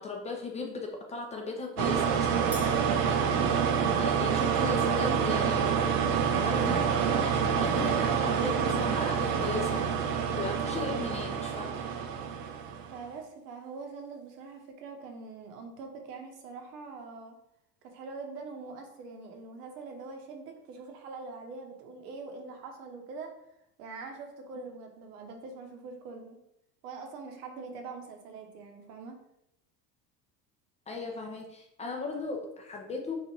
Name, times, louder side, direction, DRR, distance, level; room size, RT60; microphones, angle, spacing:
voice 1, 0.0-2.7 3.0-5.8 6.4-9.8 10.3-11.9 30.9-33.2, left 3 dB, 15° left, 1 dB, 0.3 m, -37 dB
sound 1, 1.8-13.0, right 7 dB, 45° right, 0.6 m, -27 dB
voice 2, 2.4-2.8 12.9-17.4 17.8-23.3 23.8-26.4 26.8-29.2, right 4 dB, 70° right, 4 dB, 1.0 m, -43 dB
Crash cymbal, 2.5-4.2, equal, 5° right, 0.7 m, -46 dB
3.1 x 2.5 x 4.1 m, 0.80 s
hypercardioid pair, 75°, 49 cm